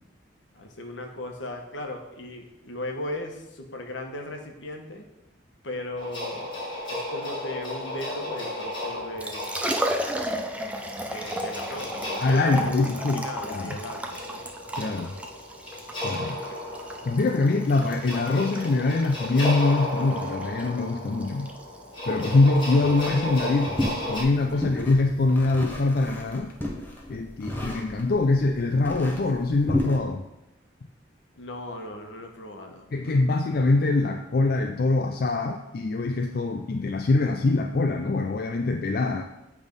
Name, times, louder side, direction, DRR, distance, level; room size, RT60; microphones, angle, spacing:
voice 1, 0.5-5.1 5.6-6.5 6.9-9.5 11.0-14.4 14.7-15.0 15.2-15.3 16.4-16.6 24.5-24.7 31.4-33.2, left 1 dB, 80° left, 3 dB, 1.1 m, -37 dB
sound 1, 6.0-24.2, left 1 dB, 25° left, 2.3 m, -34 dB
Liquid, 9.0-26.4, equal, 5° right, 0.5 m, -35 dB
voice 2, 12.2-13.8 14.8-15.1 16.0-16.4 17.0-21.5 22.1-23.7 24.1-26.5 27.1-30.2 32.9-39.2, left 3 dB, 50° left, 4 dB, 0.4 m, -23 dB
sound 2, 22.8-30.0, left 1 dB, 10° left, 1.0 m, -33 dB
8.3 x 3.5 x 5.2 m, 0.96 s
head